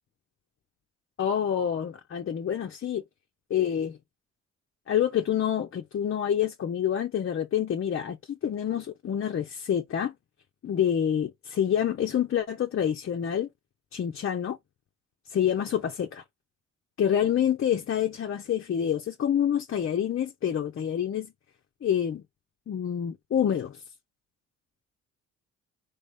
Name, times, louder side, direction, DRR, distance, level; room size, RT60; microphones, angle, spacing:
voice 1, 1.2-3.0 3.5-4.0 4.9-10.1 10.6-13.5 13.9-14.6 15.3-16.2 17.0-21.3 21.8-22.2 22.7-23.8, left 9 dB, 45° left, 0.7 m, -27 dB
4.1 x 3.5 x 3.6 m
cardioid pair, 90°, 30 cm